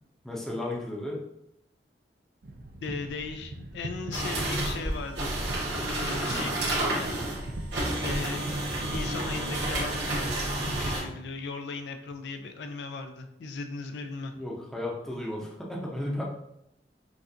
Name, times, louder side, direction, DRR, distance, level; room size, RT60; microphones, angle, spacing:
voice 1, 0.2-1.2 6.3-6.5 14.3-16.2, left 1 dB, ahead, -3 dB, 0.7 m, -34 dB
sound 1, 2.4-11.3, right 1 dB, 60° right, 0.5 m, -42 dB
voice 2, 2.8-5.3 5.8-7.5 8.0-8.5 8.8-10.3 10.6-14.3, left 4 dB, 70° left, 7 dB, 0.4 m, -37 dB
sound 2, 4.1-11.0, right 1 dB, 80° right, 1.5 m, -30 dB
5.8 x 2.5 x 2.7 m, 0.82 s
head